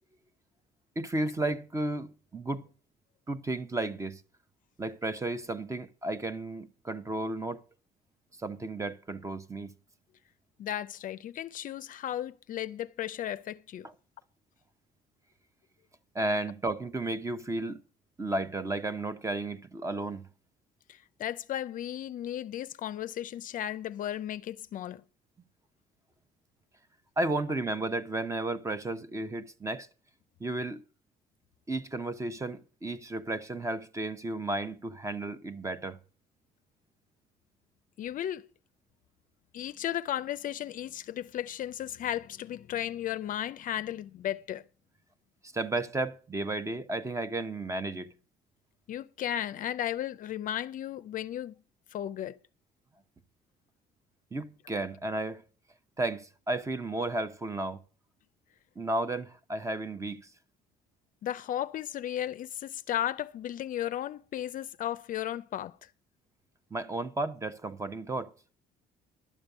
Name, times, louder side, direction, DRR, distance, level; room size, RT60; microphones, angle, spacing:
voice 1, 1.0-2.7 3.3-4.2 4.8-7.6 8.4-9.7 13.8-13.9 16.1-17.8 18.2-20.3 27.2-29.9 30.4-30.8 31.7-36.0 45.4-48.1 54.3-55.4 56.0-57.8 58.8-60.3 66.7-68.3, right 2 dB, 20° right, 0.7 m, -33 dB
voice 2, 10.6-13.9 20.9-25.0 38.0-38.5 39.5-44.6 48.9-51.5 51.9-52.4 61.2-65.8, left 11 dB, 55° left, 0.5 m, -35 dB
12.0 x 5.1 x 8.2 m
cardioid pair, 110°, 17 cm